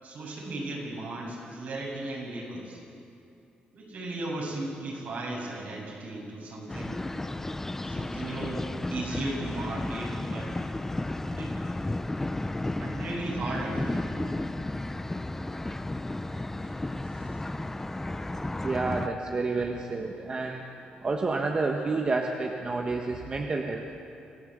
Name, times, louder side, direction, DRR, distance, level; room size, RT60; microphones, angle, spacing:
voice 1, 0.0-2.8 3.7-7.0 7.8-10.5 11.3-11.5 12.7-14.4 17.1-17.4, right 2 dB, 65° right, -2 dB, 7.6 m, -36 dB
sound 1, 6.7-19.1, left 2 dB, 15° left, 0.8 m, -33 dB
voice 2, 18.6-24.0, right 3 dB, 35° right, 2 dB, 1.5 m, -30 dB
26.5 x 16.5 x 8.1 m, 2.6 s
cardioid pair, 110°, 3 cm